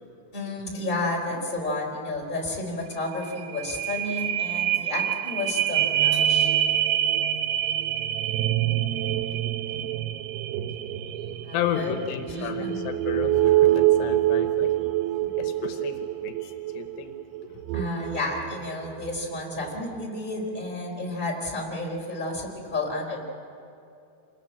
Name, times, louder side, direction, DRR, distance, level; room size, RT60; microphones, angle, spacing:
voice 1, 0.3-6.5 11.4-11.9 12.2-12.8 17.7-23.2, left 2 dB, 10° left, -1 dB, 3.9 m, -31 dB
sound 1, 2.9-3.0 3.3-19.2 19.7-19.8, right 12 dB, 75° right, 2.6 m, -26 dB
voice 2, 11.5-14.7 15.4-17.1 17.5-17.6, left 9 dB, 80° left, 7 dB, 3.1 m, -33 dB
27.0 x 21.0 x 8.5 m, 2.6 s
omnidirectional pair, 5.0 m